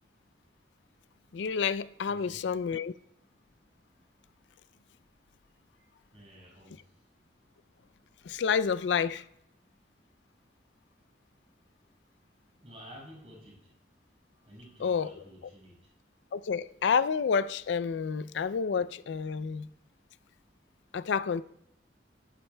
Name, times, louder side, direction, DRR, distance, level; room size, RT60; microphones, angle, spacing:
voice 1, 1.3-2.9 8.2-9.2 14.8-15.1 16.3-19.7 20.9-21.4, left 6 dB, 85° left, 0.4 m, -29 dB
voice 2, 2.1-2.5 5.5-7.1 12.6-13.7 14.4-15.9, equal, 35° right, 5.3 m, -52 dB
18.0 x 11.0 x 2.2 m
head